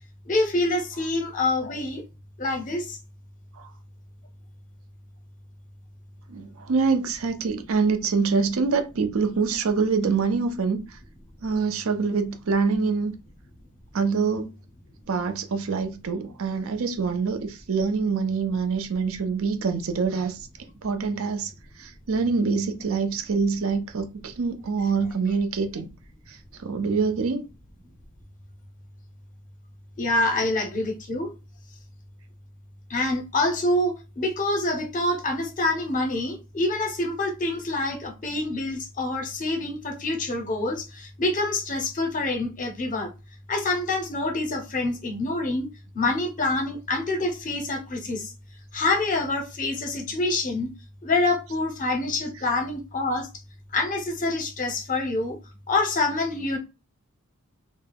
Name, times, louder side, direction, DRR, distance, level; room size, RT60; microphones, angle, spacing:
voice 1, 0.3-2.0 2.4-3.0 30.0-31.3 32.9-43.1 43.5-45.7 45.9-48.3 48.7-50.7 51.0-53.3 53.7-55.4 55.7-56.6, left 2 dB, 35° left, 0.6 m, -26 dB
voice 2, 6.3-11.0 11.4-13.1 13.9-14.5 15.1-20.4 20.8-21.5 21.8-25.9 26.3-27.4, right 5 dB, 65° right, 0.5 m, -25 dB
2.2 x 2.0 x 3.3 m
head